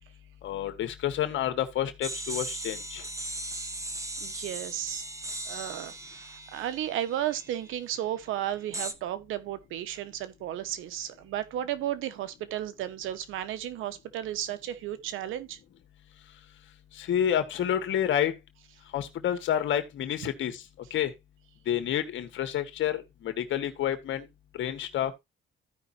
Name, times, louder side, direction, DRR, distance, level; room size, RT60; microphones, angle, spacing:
voice 1, 0.4-3.1 16.9-18.4 18.9-20.6 20.9-21.1 21.6-24.3 24.6-25.1, left 10 dB, 75° left, 1.7 m, -29 dB
sound 1, 2.0-7.7 8.7-8.9, right 2 dB, 15° right, 1.2 m, -38 dB
voice 2, 4.2-5.0 5.5-15.6, right 12 dB, 90° right, 1.1 m, -34 dB
15.0 x 5.3 x 2.7 m
cardioid pair, 90°, 20 cm